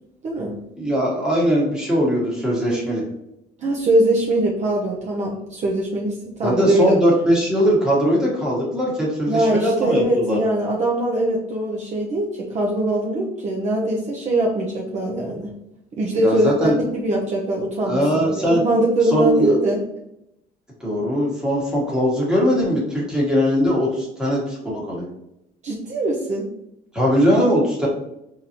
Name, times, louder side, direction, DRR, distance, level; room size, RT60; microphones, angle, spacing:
voice 1, 0.2-0.6 3.6-7.0 9.3-15.5 16.0-19.8 25.6-26.4, right 1 dB, 45° right, -2 dB, 0.7 m, -22 dB
voice 2, 0.8-3.0 6.4-10.4 16.1-16.7 17.8-18.6 19.0-19.6 20.8-25.1 26.9-27.9, equal, 5° right, -5 dB, 1.3 m, -20 dB
3.8 x 2.7 x 2.9 m, 0.84 s
cardioid pair, 110°, 17 cm